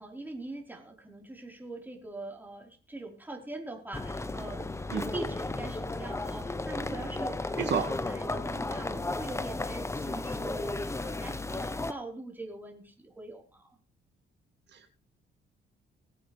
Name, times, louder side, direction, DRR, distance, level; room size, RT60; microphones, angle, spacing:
voice 1, 0.0-13.8, right 2 dB, 10° right, 1 dB, 4.3 m, -42 dB
sound 1, 3.9-11.9, left 2 dB, 15° left, 0.9 m, -34 dB
voice 2, 4.9-5.0 7.6-7.9 14.7-14.9, right 7 dB, 60° right, 6 dB, 1.9 m, -30 dB
20.5 x 8.6 x 3.4 m, 0.36 s
cardioid pair, 90°, 20 cm